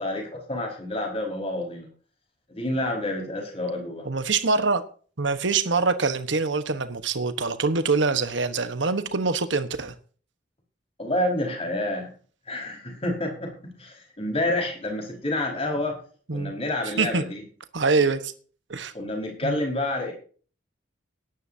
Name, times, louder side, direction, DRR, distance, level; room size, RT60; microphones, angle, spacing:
voice 1, 0.0-1.9 2.5-4.0 11.0-12.1 12.5-16.0 16.3-17.4 18.9-20.1, left 1 dB, 30° left, 5.0 m, -28 dB
voice 2, 4.0-4.8 5.2-9.9 16.3-16.5 17.0-17.2 17.7-18.3 18.7-18.9 19.4-19.6, right 4 dB, 80° right, 1.2 m, -24 dB
18.5 x 11.0 x 2.8 m
head